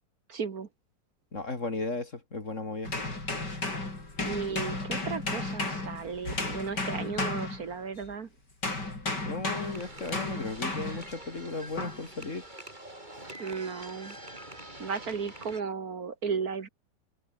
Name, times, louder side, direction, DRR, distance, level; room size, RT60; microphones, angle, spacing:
voice 1, 0.3-0.7 4.2-8.3 13.4-14.2 14.8-16.7, right 5 dB, 55° right, 2.0 m, -35 dB
voice 2, 1.3-2.9 9.2-12.4, left 3 dB, 40° left, 3.4 m, -35 dB
sound 1, 2.8-8.1 8.6-11.1 11.8-12.1, left 2 dB, 70° left, 6.7 m, -34 dB
sound 2, 9.5-15.6, right 1 dB, 25° right, 6.2 m, -46 dB
omnidirectional pair, 1.9 m